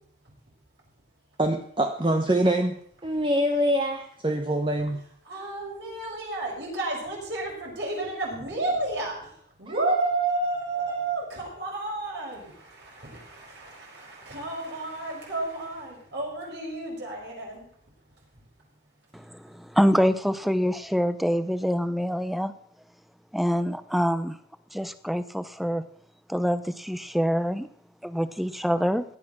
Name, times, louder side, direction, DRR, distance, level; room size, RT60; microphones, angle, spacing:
voice 1, 1.4-2.7 3.0-5.0, right 1 dB, 25° right, 4 dB, 1.0 m, -24 dB
voice 2, 5.2-17.7 18.3-18.4, right 2 dB, 65° right, -3 dB, 5.9 m, -31 dB
voice 3, 19.1-22.5 23.3-24.3 24.7-25.8 26.3-27.7 28.0-29.0, equal, ahead, 13 dB, 0.6 m, -25 dB
17.0 x 10.0 x 6.0 m, 0.66 s
head